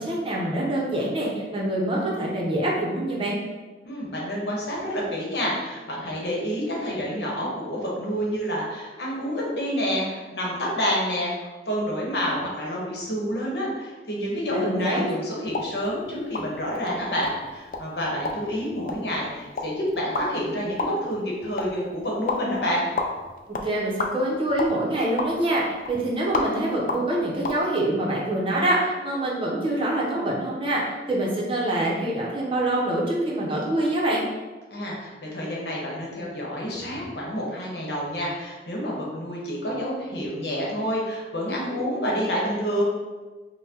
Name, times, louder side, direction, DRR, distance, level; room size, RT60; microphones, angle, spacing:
voice 1, 0.0-3.4 14.5-15.1 23.5-34.2, right 1 dB, 30° right, -4 dB, 0.7 m, -25 dB
voice 2, 3.8-22.8 34.7-42.8, equal, 70° left, -4 dB, 1.0 m, -28 dB
sound 1, 15.4-27.6, left 3 dB, 50° left, 0.3 m, -34 dB
5.6 x 2.1 x 2.8 m, 1.3 s
head